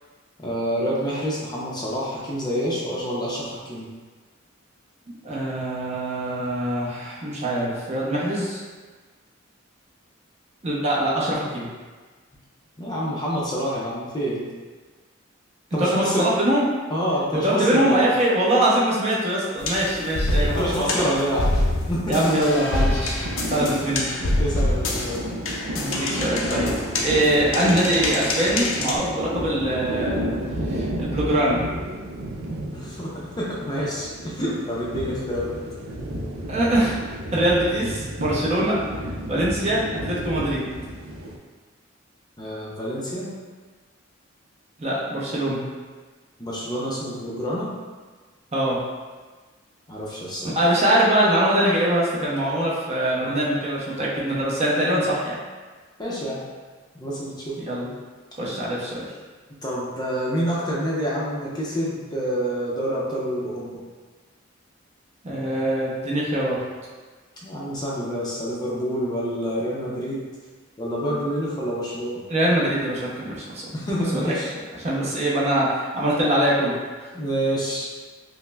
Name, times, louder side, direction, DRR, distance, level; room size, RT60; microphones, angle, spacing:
voice 1, 0.4-3.9 12.8-14.4 15.7-16.3 16.9-18.1 20.4-21.5 21.9-22.3 23.5-23.8 24.4-25.2 32.7-35.5 42.4-43.3 46.4-47.7 49.9-50.5 56.0-56.4 56.9-57.6 59.6-63.8 67.4-70.3 70.8-72.2 73.7-74.5 75.0-75.1 77.1-77.9, equal, 20° left, -6 dB, 0.5 m, -27 dB
voice 2, 5.2-8.6 10.6-11.7 15.8-16.6 17.4-21.1 22.1-24.0 25.7-26.7 27.0-30.2 30.6-31.6 36.5-38.7 39.0-40.7 44.8-45.7 48.5-48.8 50.4-55.4 57.6-57.9 58.4-59.1 65.2-66.6 72.3-73.7 74.1-74.3 74.8-77.1, right 1 dB, 30° right, -6 dB, 0.6 m, -23 dB
sound 1, 19.6-29.0, left 1 dB, 75° left, 0.5 m, -26 dB
sound 2, 23.2-41.4, equal, 90° right, 0.5 m, -32 dB
5.5 x 2.0 x 2.2 m, 1.4 s
head